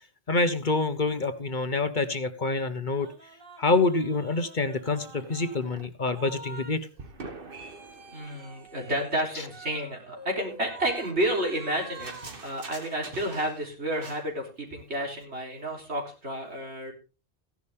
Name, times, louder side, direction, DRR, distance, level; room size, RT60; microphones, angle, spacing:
voice 1, 0.3-3.1 3.6-6.8, left 3 dB, 45° left, 10 dB, 1.1 m, -26 dB
sound 1, 3.0-6.7 7.0-13.7 13.9-14.2, right 3 dB, 55° right, 1.6 m, -45 dB
voice 2, 8.1-12.1 12.4-16.9, right 1 dB, 75° right, 0 dB, 4.1 m, -30 dB
15.5 x 11.0 x 3.6 m, 0.31 s
omnidirectional pair, 1.1 m